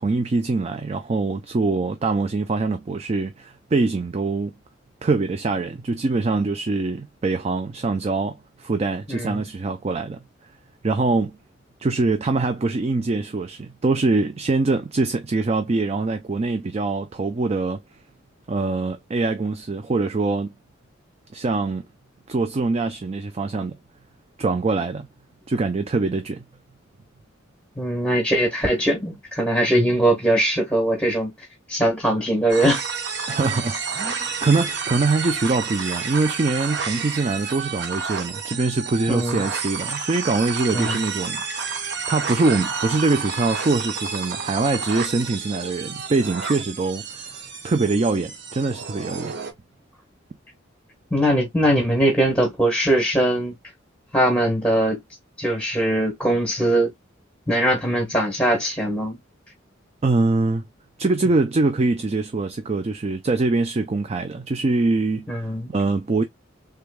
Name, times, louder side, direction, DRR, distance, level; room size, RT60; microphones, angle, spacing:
voice 1, 0.0-4.5 5.0-10.2 10.8-11.4 11.8-17.8 18.5-20.5 21.3-21.8 22.3-23.8 24.4-25.1 25.5-26.4 33.3-41.8 42.1-49.4 60.0-60.6 61.0-66.2, right 3 dB, 30° right, 0.4 m, -23 dB
voice 2, 9.1-9.4 27.8-31.3 31.7-32.8 39.1-39.5 40.7-41.0 51.1-53.5 54.1-55.0 55.4-56.9 57.5-59.2 65.3-65.7, right 1 dB, 10° left, 1.3 m, -21 dB
sound 1, 32.5-49.5, right 5 dB, 60° right, 1.0 m, -30 dB
3.4 x 3.3 x 2.2 m
head